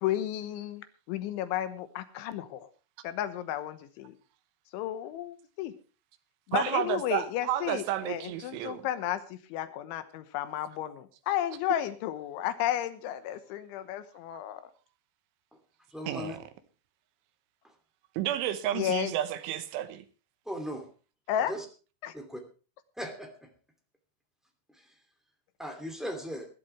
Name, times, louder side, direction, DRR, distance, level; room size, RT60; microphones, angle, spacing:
voice 1, 0.0-2.7 3.0-4.2 4.7-5.7 6.5-14.6 18.7-19.1 21.3-21.5 22.0-22.1, left 12 dB, 80° left, 12 dB, 3.5 m, -33 dB
voice 2, 6.5-8.8 16.1-16.4 18.2-20.1, right 12 dB, 90° right, 10 dB, 3.5 m, -31 dB
voice 3, 15.9-16.4 17.6-17.7 20.4-20.9 21.5-21.6 22.1-22.4 23.0-23.5 24.7-24.9 25.6-26.5, equal, ahead, 3 dB, 0.6 m, -38 dB
20.5 x 12.0 x 3.2 m, 0.35 s
omnidirectional pair, 5.4 m